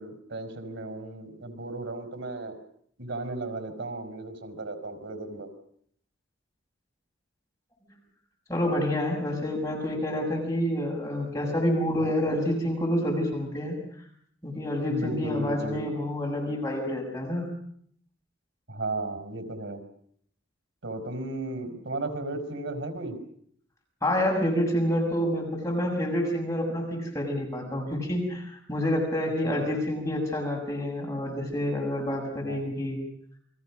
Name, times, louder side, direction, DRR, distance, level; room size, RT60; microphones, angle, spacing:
voice 1, 0.0-2.6 3.0-5.5 12.0-12.2 14.9-15.8 18.7-19.8 20.8-23.2 29.4-29.7 32.4-32.7, right 2 dB, 90° right, 7 dB, 5.0 m, -35 dB
voice 2, 8.5-13.8 14.4-17.5 24.0-33.0, left 1 dB, 15° left, -1 dB, 6.9 m, -28 dB
29.5 x 23.5 x 6.3 m, 0.64 s
head